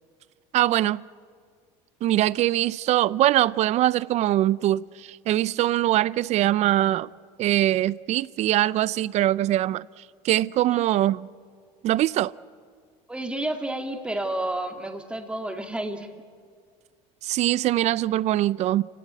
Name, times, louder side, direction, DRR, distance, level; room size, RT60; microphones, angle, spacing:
voice 1, 0.5-1.0 2.0-7.1 7.4-11.3 11.8-12.3 17.2-18.8, right 14 dB, 50° right, 0.5 m, -22 dB
voice 2, 13.1-16.1, right 1 dB, 5° right, 2.2 m, -30 dB
29.5 x 17.0 x 8.3 m
supercardioid pair, 115°, 15 cm